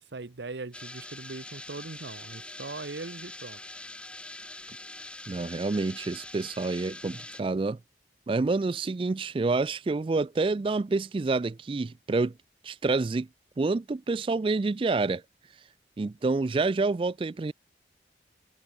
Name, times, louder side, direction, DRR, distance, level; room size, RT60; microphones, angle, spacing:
voice 1, 0.1-3.6, right 3 dB, 70° right, 0.9 m, -40 dB
sound 1, 0.7-7.4, left 2 dB, 5° left, 1.0 m, -44 dB
voice 2, 5.3-7.8 8.3-12.3 12.6-13.3 13.6-15.2 16.0-17.5, right 3 dB, 30° right, 0.3 m, -28 dB
head